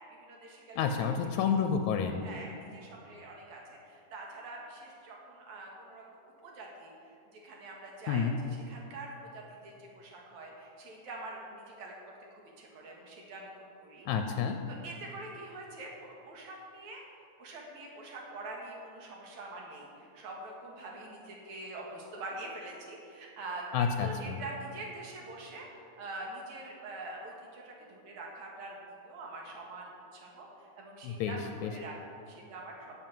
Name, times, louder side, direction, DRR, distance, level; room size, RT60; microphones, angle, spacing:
voice 1, 0.1-1.1 2.2-6.9 7.3-14.1 14.7-17.0 17.4-25.7 26.0-28.8 29.0-32.9, right 2 dB, 70° right, -1 dB, 3.0 m, -45 dB
voice 2, 0.8-2.2 8.1-8.4 14.1-14.6 23.7-24.4 31.0-31.7, left 6 dB, 80° left, 6 dB, 1.8 m, -30 dB
10.0 x 7.4 x 7.7 m, 2.5 s
omnidirectional pair, 3.6 m